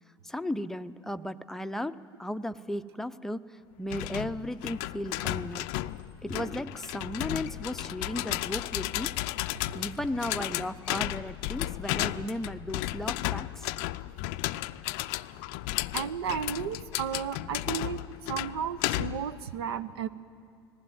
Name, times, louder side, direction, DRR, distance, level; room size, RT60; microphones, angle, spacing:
voice 1, 0.2-5.7 6.2-9.1 9.7-13.7, left 1 dB, 5° left, 11 dB, 0.6 m, -35 dB
sound 1, 3.9-19.3, left 17 dB, 55° left, 0.5 m, -34 dB
voice 2, 15.9-20.1, right 8 dB, 70° right, 15 dB, 0.7 m, -34 dB
19.5 x 15.0 x 9.1 m, 2.4 s
figure-of-eight pair, 70°, 14 cm